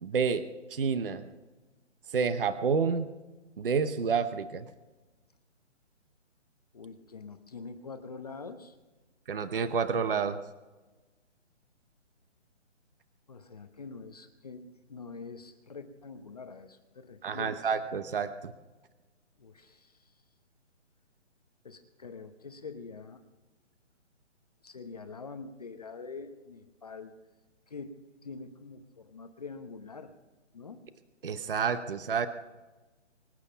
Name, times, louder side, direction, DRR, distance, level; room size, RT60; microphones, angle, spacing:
voice 1, 0.0-0.4 0.7-1.2 2.1-3.1 3.6-4.7 9.3-10.4 17.2-18.5 31.2-32.3, right 6 dB, 50° right, 11 dB, 0.9 m, -29 dB
voice 2, 6.7-8.8 13.3-17.7 19.4-20.1 21.6-23.2 24.6-27.1 27.7-30.1 30.5-30.8, left 4 dB, 30° left, 7 dB, 0.9 m, -45 dB
24.5 x 9.0 x 5.7 m, 1.2 s
hypercardioid pair, 170°, 36 cm